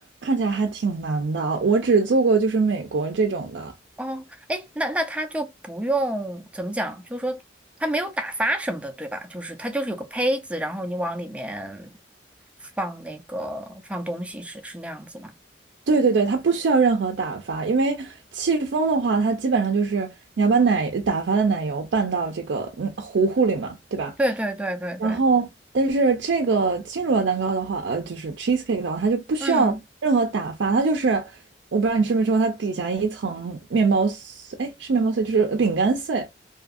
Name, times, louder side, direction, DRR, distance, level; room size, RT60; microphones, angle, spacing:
voice 1, 0.2-3.7 15.9-20.1 20.4-24.1 25.0-25.5 25.7-29.7 30.0-31.3 31.7-36.3, right 4 dB, 75° right, 0.4 m, -22 dB
voice 2, 4.0-7.4 7.8-11.9 12.6-15.3 24.2-25.2 29.4-29.8, right 1 dB, 5° right, 0.4 m, -29 dB
2.7 x 2.4 x 2.5 m
head